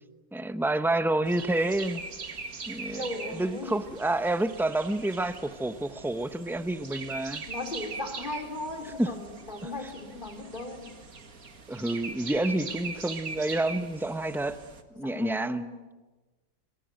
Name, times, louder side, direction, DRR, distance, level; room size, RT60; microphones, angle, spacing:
voice 1, 0.3-2.0 2.7-7.4 9.0-9.1 11.7-14.6 15.0-15.7, right 2 dB, 5° right, 10 dB, 0.3 m, -29 dB
sound 1, 1.2-14.8, right 4 dB, 50° right, 2.3 m, -42 dB
voice 2, 2.9-3.8 7.5-11.0 14.9-15.9, left 2 dB, 25° left, 4 dB, 3.9 m, -37 dB
26.0 x 25.5 x 9.1 m, 1.2 s
omnidirectional pair, 2.0 m